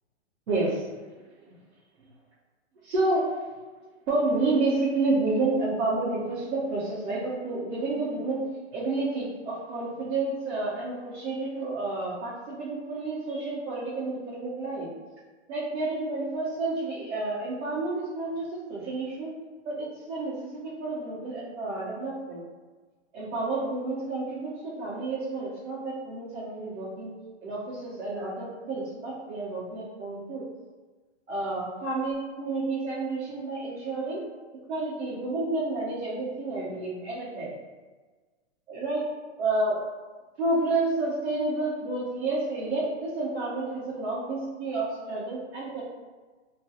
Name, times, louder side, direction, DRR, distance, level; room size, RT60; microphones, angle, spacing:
voice 1, 0.5-0.9 1.1-1.2 2.8-3.3 4.1-8.4 8.7-12.3 12.6-14.9 15.5-19.3 19.6-22.4 23.1-27.1 27.4-30.5 31.3-34.2 34.7-37.5 38.7-39.0 39.4-39.7 40.4-45.8, right 2 dB, 85° right, -10 dB, 1.0 m, -30 dB
2.4 x 2.2 x 2.8 m, 1.4 s
hypercardioid pair, 165°, 36 cm